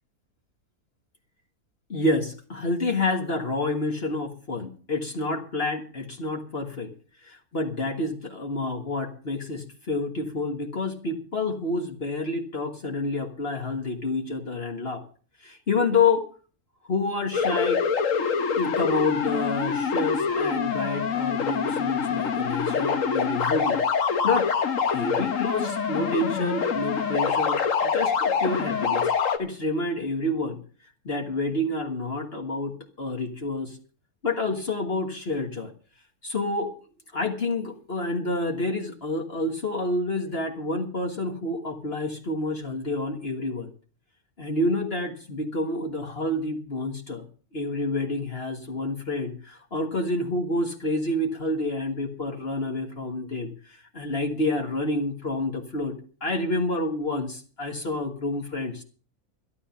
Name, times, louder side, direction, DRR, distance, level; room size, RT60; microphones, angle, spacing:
voice 1, 1.9-6.9 7.2-15.0 15.4-16.2 16.8-17.8 18.6-24.5 24.8-29.1 29.4-30.6 31.0-33.8 34.2-35.7 36.2-36.7 37.1-43.7 44.4-47.2 47.5-58.8, left 2 dB, 40° left, 4 dB, 1.7 m, -28 dB
sound 1, 17.3-29.4, left 6 dB, 60° left, 1.5 m, -25 dB
12.5 x 12.5 x 5.8 m, 0.40 s
omnidirectional pair, 1.6 m